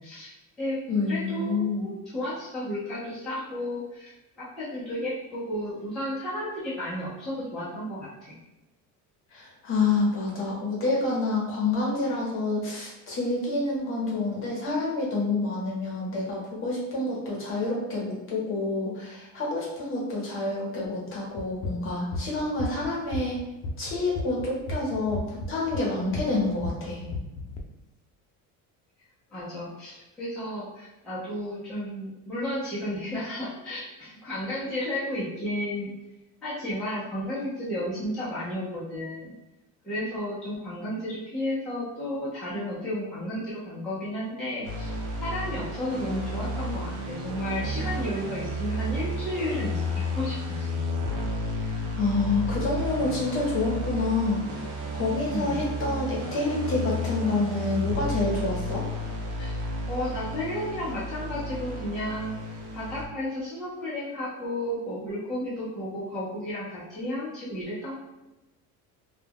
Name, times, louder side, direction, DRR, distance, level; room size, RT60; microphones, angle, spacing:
voice 1, 0.0-0.8 1.1-8.3 29.3-35.9 36.4-39.3 39.8-49.8 50.1-50.8 55.3-55.5 59.4-62.4 62.7-67.9, left 1 dB, ahead, -11 dB, 0.4 m, -33 dB
voice 2, 0.9-1.9 9.3-23.4 23.8-27.1 51.9-54.6 54.9-58.8, left 3 dB, 35° left, -4 dB, 0.8 m, -28 dB
sound 1, 21.4-27.6, left 2 dB, 75° left, 0.6 m, -34 dB
sound 2, 44.6-63.1, left 1 dB, 70° right, 0.7 m, -32 dB
2.2 x 2.1 x 3.3 m, 0.98 s
cardioid pair, 170°, 36 cm